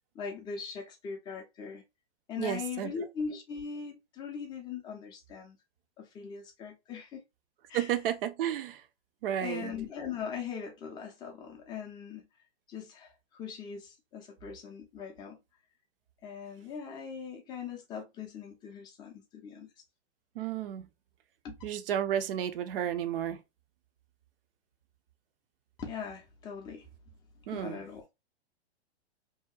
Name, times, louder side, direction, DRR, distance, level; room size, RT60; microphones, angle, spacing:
voice 1, 0.1-1.8 2.3-5.6 6.0-7.2 7.7-8.0 9.4-12.3 12.7-15.4 16.2-19.7 21.4-21.6 25.8-26.9 27.5-28.0, left 6 dB, 15° left, 0.4 m, -40 dB
voice 2, 2.4-2.9 7.7-8.8 9.2-9.7 20.4-20.9 21.6-23.4 27.5-27.8, right 10 dB, 55° right, 0.5 m, -32 dB
2.7 x 2.1 x 2.3 m
hypercardioid pair, 130°, 33 cm